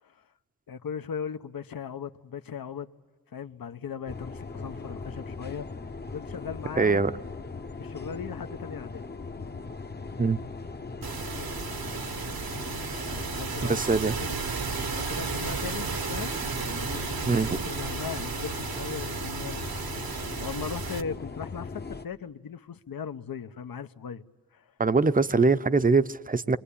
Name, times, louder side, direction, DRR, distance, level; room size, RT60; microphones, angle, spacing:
voice 1, 0.7-2.9 3.3-5.7 6.1-7.1 7.8-9.0 11.3-11.6 12.9-16.3 16.6-19.7 20.4-24.2 24.5-24.7, left 7 dB, 70° left, 1.0 m, -38 dB
sound 1, 4.1-22.1, left 4 dB, 25° left, 0.9 m, -39 dB
voice 2, 6.8-7.1 10.2-10.4 13.7-14.2 17.3-17.7 24.8-26.6, right 4 dB, 25° right, 0.8 m, -23 dB
sound 2, 11.0-21.0, right 5 dB, 75° right, 1.5 m, -34 dB
28.0 x 23.5 x 8.6 m
wide cardioid pair, 80°, 36 cm